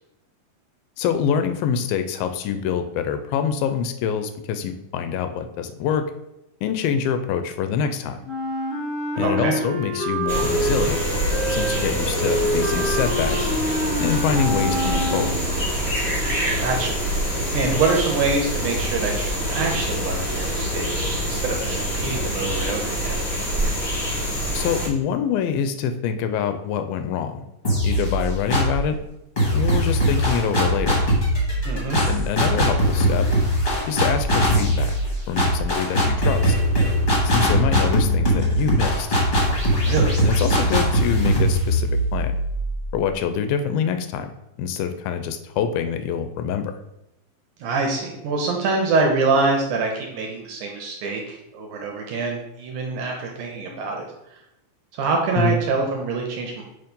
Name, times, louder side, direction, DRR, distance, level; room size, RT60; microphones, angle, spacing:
voice 1, 1.0-6.1 6.6-8.2 9.2-11.0 11.5-13.5 14.0-15.3 24.5-27.4 27.8-29.0 29.5-31.0 32.1-33.3 33.9-35.0 35.3-36.6 37.2-39.1 40.2-42.3 42.9-44.3 44.6-46.7 55.4-55.6, left 7 dB, 80° left, 8 dB, 2.2 m, -25 dB
Wind instrument woodwind instrument, 8.2-15.6, equal, 5° left, 1.0 m, -26 dB
voice 2, 9.2-9.5 16.6-17.0 17.5-23.2 31.6-32.0 39.8-40.2 47.6-54.0 54.3-54.4 54.9-56.6, right 3 dB, 75° right, 1 dB, 2.0 m, -25 dB
sound 1, 10.3-24.9, equal, 50° left, 0.4 m, -25 dB
sound 2, 27.6-28.9 29.4-43.1, equal, 35° left, 0.8 m, -21 dB
7.0 x 3.1 x 5.2 m, 0.88 s
omnidirectional pair, 4.2 m